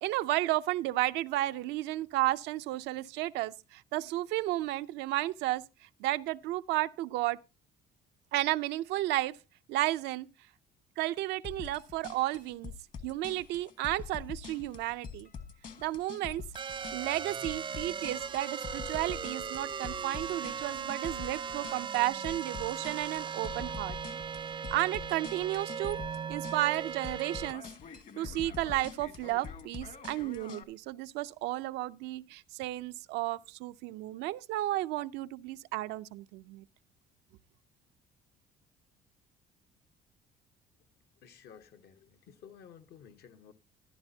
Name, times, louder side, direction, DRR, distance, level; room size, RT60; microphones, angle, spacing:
voice 1, 0.0-5.6 6.0-7.4 8.3-9.4 9.7-10.3 11.0-12.7 13.0-15.3 15.8-16.4 16.9-24.0 24.7-26.0 26.3-27.6 28.2-36.6, right 16 dB, 90° right, 0.5 m, -33 dB
sound 1, 11.4-30.6, left 6 dB, 55° left, 1.5 m, -45 dB
sound 2, 16.5-27.5, right 7 dB, 30° right, 0.5 m, -38 dB
voice 2, 41.2-43.5, left 8 dB, 70° left, 1.1 m, -54 dB
14.0 x 11.5 x 2.7 m
cardioid pair, 110°, 17 cm